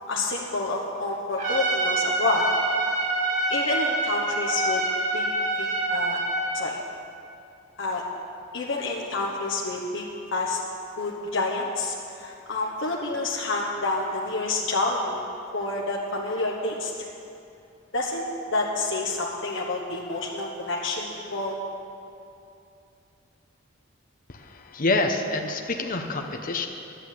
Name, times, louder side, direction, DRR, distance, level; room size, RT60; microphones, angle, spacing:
voice 1, 0.1-2.5 3.5-4.8 5.1-5.3 5.6-6.2 6.5-6.8 7.8-8.0 8.5-10.6 11.0-15.2 15.5-16.9 17.9-21.5, left 2 dB, 70° left, -2 dB, 1.2 m, -28 dB
Trumpet, 1.4-6.6, right 2 dB, 40° right, 2.6 m, -26 dB
voice 2, 24.3-26.7, left 2 dB, 45° left, 4 dB, 0.9 m, -27 dB
11.5 x 8.9 x 8.5 m, 2.7 s
head